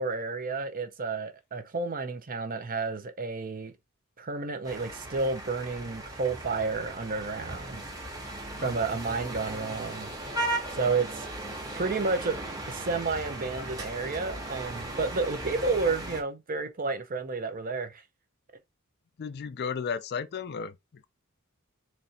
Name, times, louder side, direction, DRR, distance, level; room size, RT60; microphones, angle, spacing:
voice 1, 0.0-3.7 4.2-7.8 8.6-10.1 10.7-11.3 11.7-12.4 12.7-18.0, right 4 dB, 40° right, 0.8 m, -31 dB
sound 1, 4.6-16.2, right 1 dB, 15° right, 1.2 m, -37 dB
voice 2, 19.2-20.7, left 6 dB, 50° left, 0.4 m, -33 dB
4.2 x 3.2 x 2.9 m
head